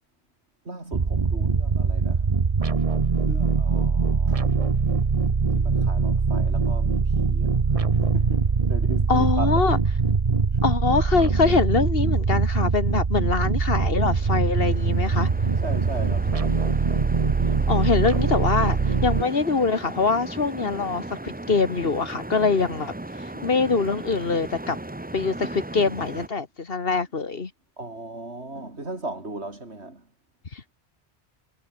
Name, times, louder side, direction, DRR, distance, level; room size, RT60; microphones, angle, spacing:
voice 1, 0.6-2.4 3.2-4.5 5.5-9.7 10.5-10.6 15.6-16.6 23.3-23.5 27.8-30.1, right 2 dB, 85° right, 5.0 m, -37 dB
sound 1, 0.9-19.2, right 5 dB, 35° right, 1.0 m, -22 dB
voice 2, 9.1-9.8 10.6-15.3 17.7-22.9 23.4-24.8 25.1-27.5 30.5-30.7, left 4 dB, 60° left, 1.9 m, -24 dB
sound 2, 13.6-26.3, right 1 dB, 10° right, 0.7 m, -37 dB
omnidirectional pair, 1.1 m